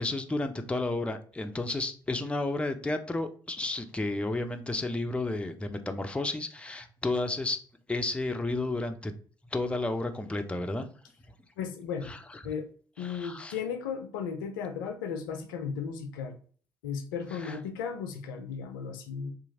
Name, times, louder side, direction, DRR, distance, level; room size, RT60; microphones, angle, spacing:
voice 1, 0.0-7.6 7.9-9.1 9.5-10.9 12.0-12.4 13.0-13.6 17.3-17.6, left 2 dB, 10° left, 6 dB, 0.4 m, -32 dB
voice 2, 11.6-12.1 12.4-12.7 13.0-16.4 16.8-19.3, left 6 dB, 75° left, 6 dB, 0.4 m, -35 dB
2.8 x 2.4 x 2.8 m, 0.44 s
figure-of-eight pair, 45°, 11 cm